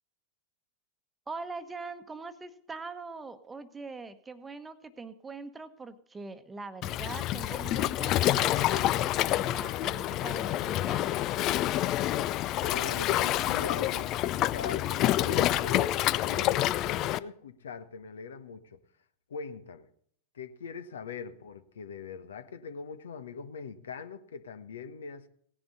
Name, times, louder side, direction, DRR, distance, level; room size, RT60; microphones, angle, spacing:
voice 1, 1.3-11.3, right 4 dB, 15° right, 1.1 m, -42 dB
Waves surf, 6.8-17.2, left 14 dB, 35° left, 0.5 m, -28 dB
voice 2, 12.5-18.8 19.3-19.9 20.3-25.3, left 5 dB, 65° left, 1.1 m, -41 dB
17.5 x 10.5 x 4.1 m
figure-of-eight pair, 90°, 0 cm